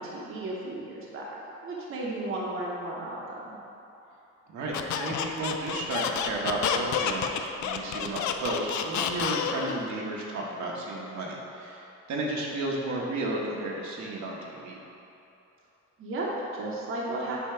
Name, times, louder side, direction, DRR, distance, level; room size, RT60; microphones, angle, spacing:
voice 1, 0.0-1.4 1.6-3.6 16.0-17.4, right 2 dB, 45° right, -4 dB, 0.9 m, -34 dB
voice 2, 4.5-14.8, right 2 dB, 70° right, -3 dB, 1.1 m, -33 dB
Squeak, 4.7-9.8, left 8 dB, 75° left, 0.5 m, -29 dB
8.2 x 2.9 x 5.6 m, 2.9 s
cardioid pair, 155°, 29 cm